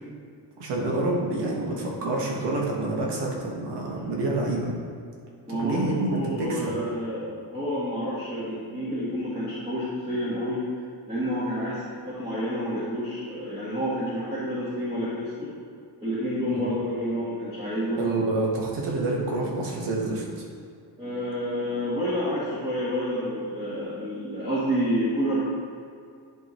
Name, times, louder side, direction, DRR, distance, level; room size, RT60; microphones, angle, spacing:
voice 1, 0.6-4.7 5.6-6.7 16.5-16.6 18.0-20.4, right 2 dB, 70° right, -3 dB, 1.7 m, -27 dB
voice 2, 5.5-10.6 11.1-15.5 16.0-18.1 21.0-25.5, equal, 15° right, -9 dB, 1.5 m, -29 dB
10.5 x 5.4 x 3.1 m, 2.3 s
cardioid pair, 160°, 42 cm